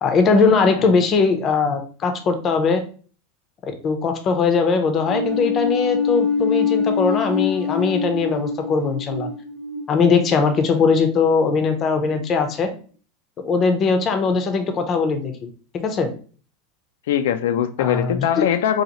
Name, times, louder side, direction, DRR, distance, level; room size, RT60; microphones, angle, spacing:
voice 1, 0.0-2.8 3.8-9.3 9.9-12.7 13.4-15.5 15.8-16.1 17.8-18.5, left 4 dB, 25° left, 6 dB, 0.6 m, -20 dB
sound 1, 5.1-11.5, left 6 dB, 25° right, 1.0 m, -25 dB
voice 2, 17.1-18.8, left 10 dB, 80° left, 9 dB, 0.3 m, -21 dB
4.0 x 2.8 x 2.9 m, 0.40 s
supercardioid pair, 170°, 0 cm